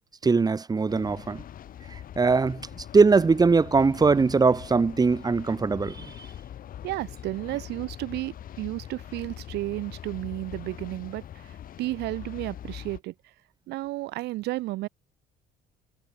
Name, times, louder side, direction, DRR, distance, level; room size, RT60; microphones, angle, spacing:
voice 1, 0.2-1.4 1.9-6.1, right 4 dB, 20° right, 2.3 m, -21 dB
sound 1, 0.9-13.0, left 10 dB, 55° left, 4.4 m, -42 dB
voice 2, 6.8-13.1 13.7-14.9, right 18 dB, 85° right, 1.7 m, -33 dB
cardioid pair, 110°, 17 cm